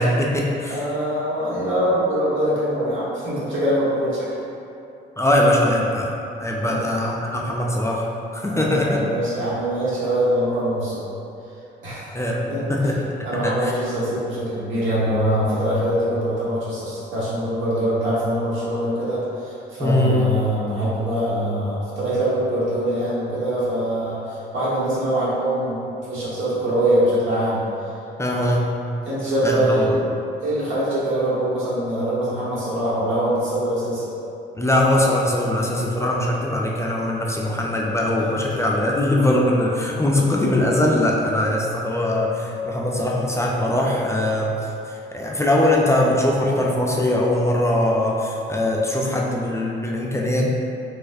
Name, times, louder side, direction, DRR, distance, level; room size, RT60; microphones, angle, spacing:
voice 1, 0.0-0.8 5.2-6.1 6.4-8.1 8.3-9.0 12.1-12.9 13.4-13.7 19.8-20.3 28.2-28.7 29.4-29.8 34.6-44.5 45.1-50.5, left 1 dB, 15° left, -2 dB, 0.4 m, -21 dB
voice 2, 0.6-4.3 6.7-6.8 8.5-11.0 11.8-12.1 12.5-12.6 13.2-25.8 26.1-27.6 29.0-29.9 30.4-34.1, right 1 dB, 80° right, -9 dB, 1.2 m, -23 dB
4.2 x 2.4 x 2.6 m, 2.7 s
cardioid pair, 90°, 20 cm